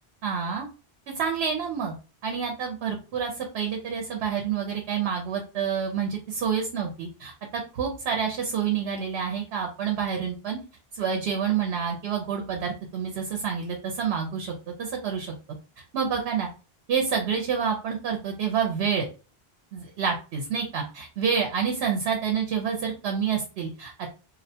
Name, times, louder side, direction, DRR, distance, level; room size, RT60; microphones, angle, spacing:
voice 1, 0.2-0.7 1.2-1.9 2.2-7.3 7.7-10.6 10.9-14.5 14.8-15.3 15.9-16.5 16.9-19.1 19.7-24.1, right 7 dB, 80° right, 2 dB, 0.8 m, -28 dB
2.4 x 2.1 x 2.6 m, 0.34 s
omnidirectional pair, 1.1 m